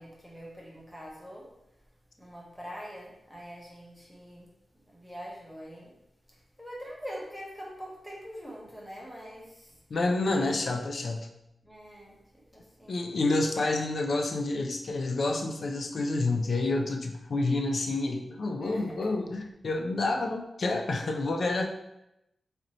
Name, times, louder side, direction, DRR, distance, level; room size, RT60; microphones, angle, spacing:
voice 1, 0.0-1.5 2.2-4.5 4.9-5.9 6.6-9.7 11.6-13.1 18.6-19.1, equal, ahead, -4 dB, 0.8 m, -44 dB
voice 2, 9.9-11.3 12.9-21.6, left 2 dB, 50° left, 3 dB, 0.4 m, -29 dB
4.1 x 2.6 x 3.1 m, 0.85 s
wide cardioid pair, 175°, 0 cm